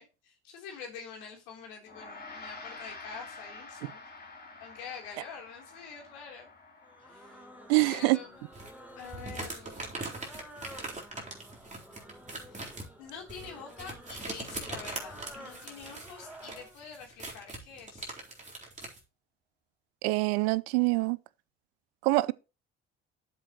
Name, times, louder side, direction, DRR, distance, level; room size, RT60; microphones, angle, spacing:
voice 1, 0.0-4.0 4.6-6.5 7.0-7.4 7.7-8.5 9.0-9.9 12.5-12.6 13.0-18.2, left 6 dB, 65° left, 3.6 m, -46 dB
Gong, 1.9-11.4, left 3 dB, 25° left, 3.5 m, -50 dB
sound 1, 6.8-16.8, equal, 5° right, 3.4 m, -51 dB
voice 2, 7.7-8.2 20.0-21.2 22.0-22.3, right 23 dB, 60° right, 0.6 m, -25 dB
sound 2, 8.5-19.0, right 2 dB, 20° right, 3.9 m, -42 dB
12.5 x 7.5 x 3.1 m
figure-of-eight pair, 50°, 36 cm